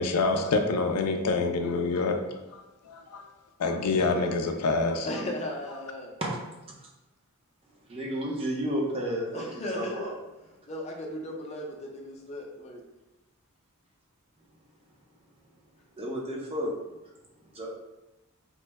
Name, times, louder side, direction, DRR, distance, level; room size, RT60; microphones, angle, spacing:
voice 1, 0.0-2.2 2.5-3.3 3.6-5.1, left 3 dB, 90° left, 5 dB, 0.4 m, -27 dB
voice 2, 3.9-4.4 6.2-6.3 7.9-9.5 9.7-10.1 16.0-16.7 17.5-17.7, equal, 25° right, -2 dB, 0.6 m, -32 dB
voice 3, 5.0-6.1 9.3-10.1 10.7-12.8, left 1 dB, 30° left, -1 dB, 0.5 m, -36 dB
3.0 x 2.0 x 3.4 m, 1.0 s
head